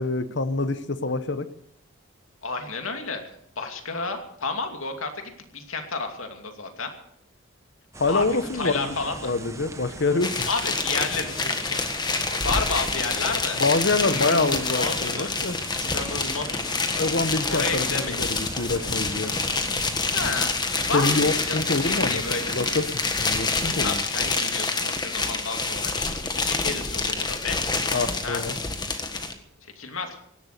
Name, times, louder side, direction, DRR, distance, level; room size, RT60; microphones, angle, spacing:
voice 1, 0.0-1.5 8.0-9.0 9.2-10.5 13.6-15.6 17.0-19.3 20.9-22.9 23.2-23.9 27.9-28.6, left 3 dB, 55° left, 12 dB, 1.1 m, -26 dB
voice 2, 2.4-3.2 3.6-6.9 8.1-8.3 8.5-9.3 10.5-12.0 12.3-13.6 14.1-15.3 15.8-17.1 17.5-18.2 20.1-20.5 20.9-22.6 23.8-27.6 28.2-28.4 29.6-30.1, left 4 dB, 85° left, 5 dB, 2.6 m, -31 dB
sound 1, 7.9-24.0, right 2 dB, 15° right, 1.2 m, -40 dB
sound 2, 10.2-29.3, left 3 dB, 20° left, 1.6 m, -27 dB
17.0 x 12.0 x 6.8 m, 0.70 s
head